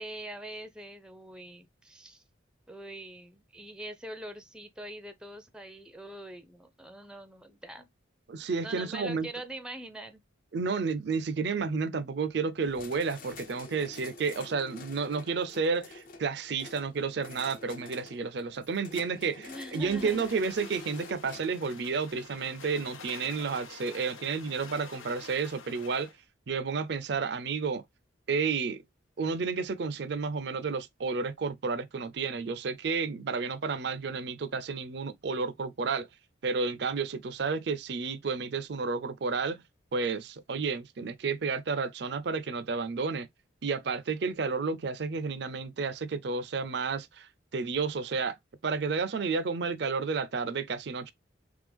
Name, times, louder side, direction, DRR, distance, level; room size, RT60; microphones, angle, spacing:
voice 1, 0.0-2.2 2.7-7.9 8.6-10.2 19.5-20.5, right 1 dB, 5° right, 0.4 m, -43 dB
voice 2, 8.3-9.3 10.5-26.1 26.5-27.8 28.3-28.8 29.2-36.1 36.4-39.6 39.9-43.3 43.6-48.4 48.6-51.1, right 4 dB, 55° right, 0.4 m, -31 dB
sound 1, 12.6-21.4, left 3 dB, 45° left, 0.6 m, -48 dB
sound 2, 19.7-26.2, left 5 dB, 90° left, 0.9 m, -48 dB
3.6 x 3.2 x 3.4 m
head